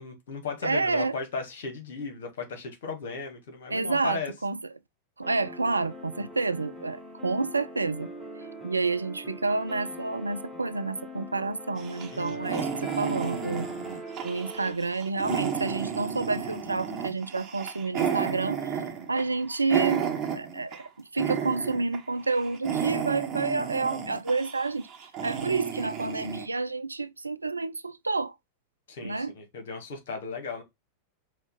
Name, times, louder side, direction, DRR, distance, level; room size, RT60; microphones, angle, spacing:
voice 1, 0.0-4.3 12.1-12.5 28.9-30.6, left 4 dB, 55° left, 1.5 m, -36 dB
voice 2, 0.6-1.2 3.7-4.6 5.2-8.1 8.6-13.7 14.2-18.6 19.1-20.0 20.3-24.9 25.2-28.3 29.0-29.3, right 3 dB, 80° right, 0.3 m, -29 dB
sound 1, 5.2-14.7, right 1 dB, ahead, 1.4 m, -41 dB
sound 2, 11.8-20.9 21.2-22.0 22.3-26.5, right 7 dB, 30° right, 1.1 m, -32 dB
5.2 x 2.4 x 4.0 m
figure-of-eight pair, 90°, 0 cm